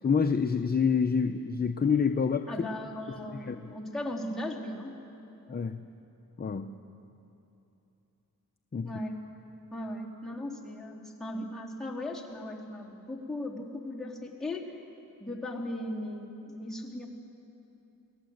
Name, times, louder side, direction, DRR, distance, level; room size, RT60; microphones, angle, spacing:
voice 1, 0.0-2.5 3.3-3.6 5.5-5.8 6.4-6.7 8.7-8.9, left 6 dB, 30° left, 6 dB, 0.7 m, -27 dB
voice 2, 2.5-5.0 8.8-9.2 9.7-14.8 15.2-17.1, left 1 dB, ahead, -5 dB, 3.4 m, -37 dB
29.0 x 19.5 x 8.0 m, 2.9 s
wide cardioid pair, 125°, 33 cm